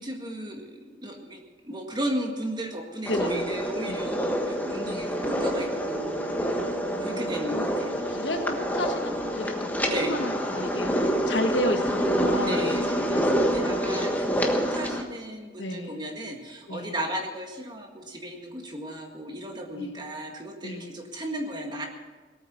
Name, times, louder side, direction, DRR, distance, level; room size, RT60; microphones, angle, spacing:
voice 1, 0.0-6.3 6.8-8.0 9.8-10.2 12.3-21.9, right 1 dB, 25° right, 2 dB, 1.8 m, -35 dB
voice 2, 3.1-3.5 3.9-4.1 4.8-5.1 6.9-7.4 7.9-12.7 13.7-14.1 15.6-16.0 16.7-16.9 19.7-20.0 20.6-20.9, left 1 dB, 75° left, 6 dB, 1.4 m, -32 dB
sound 1, 3.1-15.0, equal, 10° left, 1.3 m, -27 dB
18.0 x 8.9 x 7.0 m, 1.3 s
head